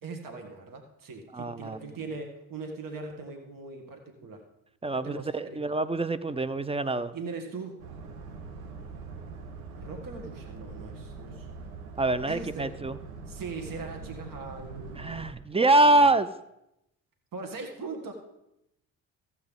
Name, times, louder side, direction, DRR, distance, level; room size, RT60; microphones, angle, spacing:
voice 1, 0.0-4.4 4.9-5.6 7.1-7.8 9.8-11.5 12.3-12.7 13.3-15.3 15.8-16.1 17.3-18.1, right 4 dB, 50° right, 3 dB, 1.9 m, -40 dB
voice 2, 1.3-1.8 4.8-7.1 12.0-13.0 15.0-16.3, right 2 dB, 15° right, 14 dB, 0.6 m, -25 dB
Boat Water vehicle, 7.8-15.3, right 4 dB, 85° right, 0.9 m, -43 dB
14.5 x 8.1 x 3.7 m, 0.85 s
hypercardioid pair, 45°, 42 cm